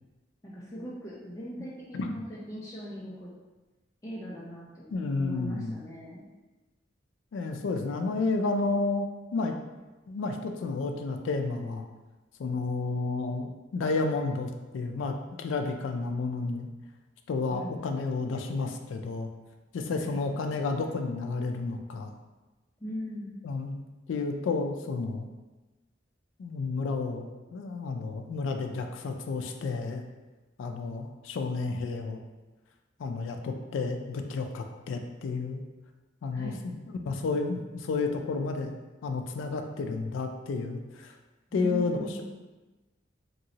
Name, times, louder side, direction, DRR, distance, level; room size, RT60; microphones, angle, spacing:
voice 1, 0.4-3.4 4.0-6.2 17.5-17.7 20.0-20.2 22.8-23.4 36.3-36.6 41.5-42.2, equal, 15° left, -7 dB, 0.4 m, -39 dB
voice 2, 1.9-2.2 4.9-5.8 7.3-9.1 9.3-9.6 10.1-11.9 12.4-16.7 17.3-19.3 19.7-22.1 23.4-23.8 24.1-25.3 26.4-30.0 30.6-32.2 33.0-35.6 36.2-38.8 39.0-41.1 41.5-42.2, left 3 dB, 85° left, 5 dB, 0.3 m, -31 dB
2.9 x 2.7 x 2.8 m, 1.2 s
head